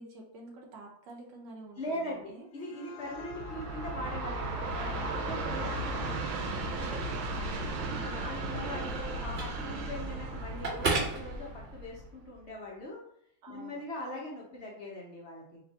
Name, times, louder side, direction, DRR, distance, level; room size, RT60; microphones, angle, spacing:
voice 1, 0.0-2.5 7.7-8.6 13.4-13.8, right 2 dB, 70° right, 0 dB, 1.5 m, -49 dB
voice 2, 1.8-7.1 8.0-13.0 13.5-15.6, left 1 dB, 60° left, -3 dB, 0.7 m, -41 dB
sound 1, 2.3-7.8, left 6 dB, 80° left, 1.4 m, -50 dB
Train, 3.1-12.3, right 2 dB, 85° right, 1.5 m, -36 dB
Telephone, 7.3-12.0, right 3 dB, 35° right, 1.7 m, -37 dB
3.9 x 2.5 x 4.1 m, 0.72 s
omnidirectional pair, 2.2 m